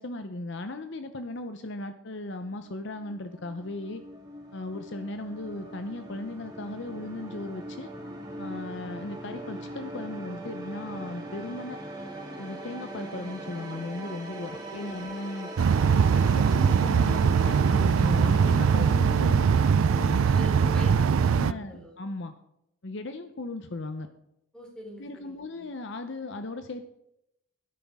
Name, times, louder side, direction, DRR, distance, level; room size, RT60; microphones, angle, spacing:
voice 1, 0.0-4.0 4.5-7.9 8.4-11.8 12.4-15.5 15.9-20.2 20.6-21.0 21.3-22.3 22.8-24.1 25.0-26.8, left 2 dB, 55° left, 8 dB, 0.7 m, -37 dB
sound 1, 2.4-20.8, right 1 dB, 20° right, 1.9 m, -41 dB
voice 2, 14.5-15.0 20.3-22.0 24.5-25.7, equal, 5° left, -3 dB, 3.6 m, -45 dB
sound 2, 15.6-21.5, right 6 dB, 75° right, 0.4 m, -22 dB
13.0 x 11.0 x 3.6 m, 0.80 s
head